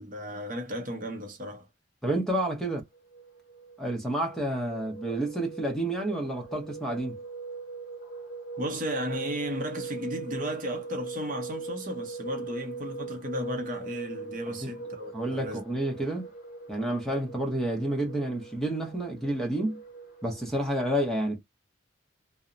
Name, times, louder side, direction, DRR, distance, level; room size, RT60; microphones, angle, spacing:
voice 1, 0.0-1.7 8.6-15.6, equal, 40° right, 0.6 m, -34 dB
voice 2, 2.0-2.8 3.8-7.2 14.5-14.7 15.1-16.3 16.7-19.8 20.2-21.4, right 1 dB, ahead, 0.7 m, -29 dB
sound 1, 2.9-20.7, right 4 dB, 45° left, 0.9 m, -41 dB
2.7 x 2.0 x 2.4 m
head